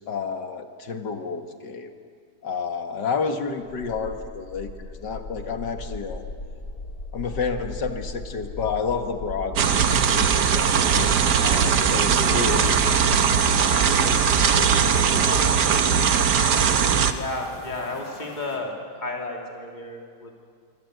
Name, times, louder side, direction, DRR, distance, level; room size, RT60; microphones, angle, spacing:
voice 1, 0.0-1.9 2.4-6.2 7.1-9.6 9.9-11.1 11.4-13.2 13.7-14.2 14.5-15.6, left 5 dB, 90° left, 6 dB, 2.3 m, -31 dB
sound 1, 3.7-18.6, left 3 dB, 65° left, 3.3 m, -37 dB
sound 2, 9.6-17.1, right 7 dB, 80° right, 1.7 m, -20 dB
voice 2, 17.0-18.7 19.0-20.4, left 2 dB, 25° left, 0 dB, 3.0 m, -32 dB
25.5 x 24.0 x 8.1 m, 2.1 s
omnidirectional pair, 1.8 m